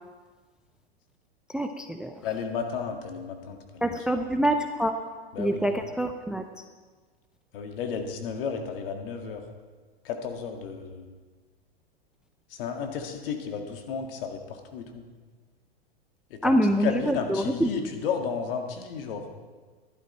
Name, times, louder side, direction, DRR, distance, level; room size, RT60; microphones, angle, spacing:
voice 1, 1.5-2.1 3.8-4.9 5.4-6.4 16.4-17.7, equal, 5° right, 6 dB, 0.5 m, -25 dB
voice 2, 2.2-4.0 5.3-5.8 7.5-9.4 10.0-11.0 12.5-15.1 16.3-19.3, left 6 dB, 60° left, 4 dB, 2.0 m, -33 dB
12.0 x 11.5 x 4.4 m, 1.4 s
hypercardioid pair, 110°, 31 cm